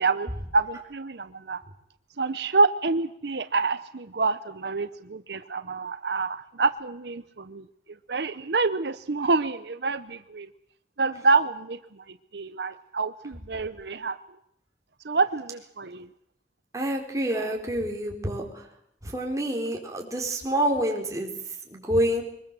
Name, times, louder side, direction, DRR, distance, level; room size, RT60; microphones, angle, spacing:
voice 1, 0.0-1.6 2.2-10.5 11.0-14.2 15.0-16.1, right 3 dB, 75° right, 12 dB, 0.8 m, -27 dB
voice 2, 16.7-18.7 19.0-22.2, right 1 dB, 20° right, 1 dB, 4.4 m, -27 dB
23.5 x 20.5 x 7.7 m, 0.76 s
head